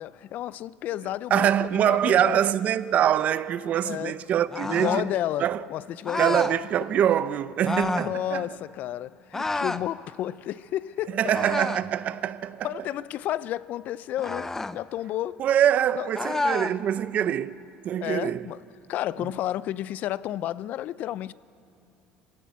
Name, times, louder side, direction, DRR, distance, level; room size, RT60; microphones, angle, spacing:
voice 1, 0.0-2.4 3.8-4.2 4.6-6.4 8.0-11.2 12.6-15.4 15.9-16.1 18.0-18.6 18.9-21.3, left 13 dB, 60° left, 0.4 m, -31 dB
voice 2, 1.3-5.1 5.4-5.6 6.2-8.4 11.1-12.7 15.4-17.6 17.8-18.5, right 10 dB, 50° right, 0.6 m, -24 dB
sound 1, 4.5-5.1 6.0-6.6 7.6-8.1 9.3-9.9 11.3-11.9 14.2-14.8 16.1-16.8, left 3 dB, 15° left, 0.6 m, -29 dB
22.5 x 17.0 x 8.2 m
supercardioid pair, 105°, 3 cm